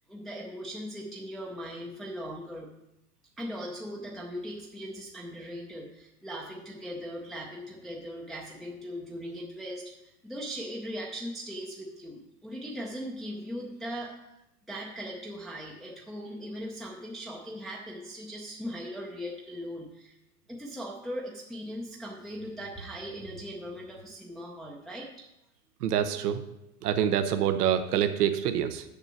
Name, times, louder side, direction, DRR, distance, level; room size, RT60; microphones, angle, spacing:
voice 1, 0.1-2.7 3.4-14.3 14.7-20.1 20.5-25.3, equal, ahead, -2 dB, 0.5 m, -39 dB
voice 2, 25.8-26.4 26.8-28.8, right 9 dB, 85° right, 9 dB, 0.9 m, -26 dB
6.9 x 6.6 x 6.2 m, 0.88 s
supercardioid pair, 140°, 45 cm